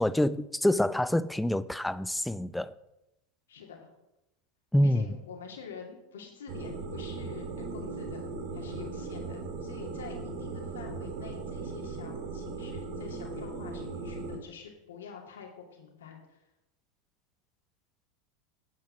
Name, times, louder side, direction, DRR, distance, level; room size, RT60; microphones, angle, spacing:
voice 1, 0.0-2.7 4.7-5.1, left 1 dB, 5° left, 0.5 m, -26 dB
voice 2, 3.5-3.9 4.8-16.4, left 6 dB, 80° left, 2.5 m, -47 dB
sound 1, 6.5-14.4, right 3 dB, 60° right, 2.0 m, -38 dB
9.2 x 7.6 x 6.1 m
hypercardioid pair, 90°, 0 cm